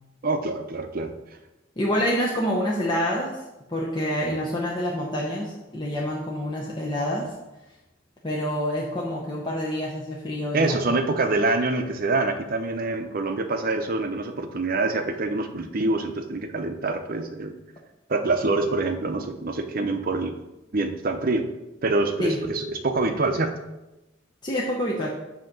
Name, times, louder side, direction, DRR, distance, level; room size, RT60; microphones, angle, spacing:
voice 1, 0.2-1.1 10.5-17.5 18.1-20.3 20.7-21.4 21.8-23.5, right 3 dB, 50° right, 6 dB, 0.6 m, -25 dB
voice 2, 1.8-3.4 3.7-7.3 8.2-10.8 22.2-22.4 24.4-25.1, equal, 25° left, -3 dB, 0.7 m, -27 dB
7.7 x 2.9 x 5.9 m, 1.0 s
head